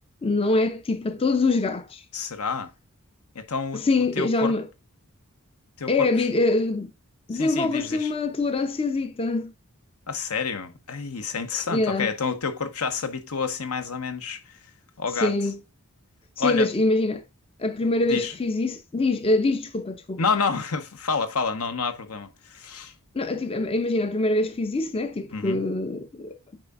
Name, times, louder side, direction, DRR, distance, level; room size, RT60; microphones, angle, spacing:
voice 1, 0.2-2.0 3.7-4.7 5.9-6.9 7.3-9.5 11.7-12.1 15.2-15.6 16.4-17.2 17.6-20.2 23.1-26.4, left 2 dB, 25° left, 0.4 m, -24 dB
voice 2, 2.1-2.7 3.3-3.8 4.2-4.5 5.8-6.3 7.3-8.1 10.1-14.6 15.0-15.3 16.4-16.7 18.1-18.3 20.2-22.9 25.3-25.6, left 5 dB, 75° left, 1.0 m, -29 dB
9.0 x 4.6 x 2.4 m
head